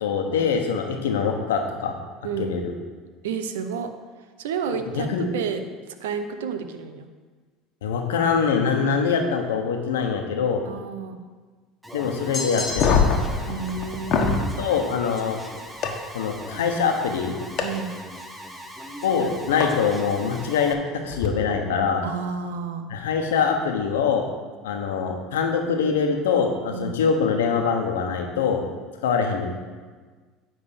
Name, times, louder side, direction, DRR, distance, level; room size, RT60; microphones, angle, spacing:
voice 1, 0.0-1.9 2.4-2.7 4.7-5.3 7.8-10.6 11.9-13.0 14.6-15.4 16.1-17.3 19.0-20.8 21.0-22.0 22.9-24.2 24.6-28.6 29.0-29.5, left 6 dB, 90° left, 3 dB, 1.1 m, -24 dB
voice 2, 3.2-3.9 4.4-7.1 10.7-11.2 13.5-14.5 17.6-17.9 22.0-22.9 26.7-27.0, right 6 dB, 85° right, 8 dB, 0.7 m, -30 dB
Alarm, 11.8-20.7, equal, ahead, 1.1 m, -40 dB
sound 1, 12.3-13.3, left 3 dB, 35° left, 1.4 m, -31 dB
sound 2, 12.7-14.4 15.8-15.9 17.6-17.7 19.6-19.7 21.1-21.3, left 5 dB, 55° left, 1.2 m, -22 dB
10.0 x 3.7 x 7.1 m, 1.4 s
supercardioid pair, 90°, 0 cm